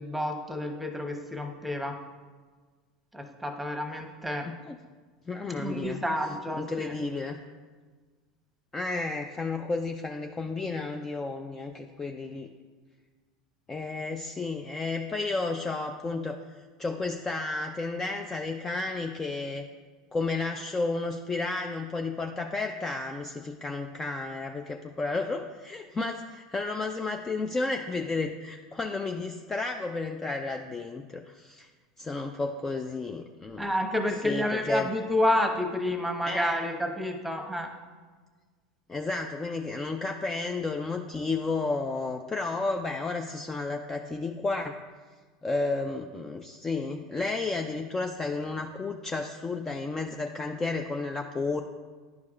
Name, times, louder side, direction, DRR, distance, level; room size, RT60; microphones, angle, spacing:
voice 1, 0.0-2.0 3.1-4.5 5.6-6.9 33.6-37.7, left 1 dB, 5° right, 4 dB, 0.9 m, -29 dB
voice 2, 4.5-4.8 5.3-6.0 6.6-7.4 8.7-12.5 13.7-16.4 16.8-19.7 20.1-31.7 32.0-33.7 34.2-34.9 36.3-36.6 38.9-44.8 45.4-51.6, left 3 dB, 20° left, 4 dB, 0.4 m, -32 dB
10.5 x 4.7 x 2.4 m, 1.4 s
hypercardioid pair, 85°, 2 cm